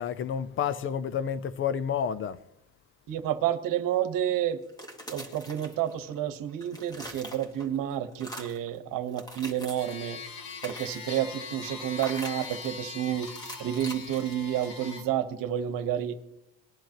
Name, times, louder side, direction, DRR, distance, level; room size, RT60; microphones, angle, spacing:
voice 1, 0.0-2.4, left 8 dB, 35° left, 0.5 m, -30 dB
voice 2, 3.1-4.6 5.1-10.2 10.6-13.3 13.6-16.2, right 10 dB, 60° right, 1.2 m, -30 dB
sound 1, 4.6-6.2 6.5-7.8 8.1-8.7 9.1-10.0 10.4-11.2 11.9-12.8 13.2-14.9, equal, 10° left, 1.8 m, -44 dB
sound 2, 9.7-15.0, left 5 dB, 80° left, 2.4 m, -41 dB
19.5 x 10.5 x 3.0 m
cardioid pair, 145°, 37 cm